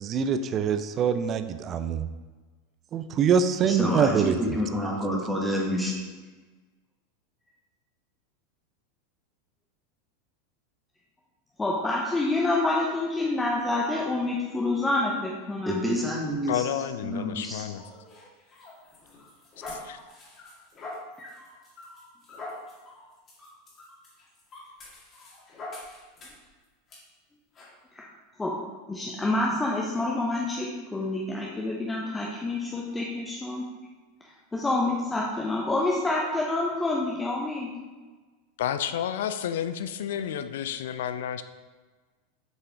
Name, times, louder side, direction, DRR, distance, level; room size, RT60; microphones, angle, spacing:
voice 1, 0.0-2.1 2.9-4.4, right 7 dB, 35° right, 11 dB, 0.5 m, -24 dB
voice 2, 3.6-6.0 15.7-16.6 17.0-17.6, equal, 5° right, -3 dB, 1.5 m, -28 dB
voice 3, 11.6-15.8 27.9-28.0 28.4-28.5 28.9-33.6 34.5-37.7, left 2 dB, 10° left, -3 dB, 0.9 m, -27 dB
voice 4, 16.5-17.8 19.7-20.0 38.6-41.4, left 9 dB, 60° left, 11 dB, 0.4 m, -30 dB
sound 1, 17.8-26.5 26.9-27.0 27.5-27.7, left 2 dB, 30° left, 2.1 m, -44 dB
7.5 x 5.5 x 3.5 m, 1.3 s
figure-of-eight pair, 85°, 0 cm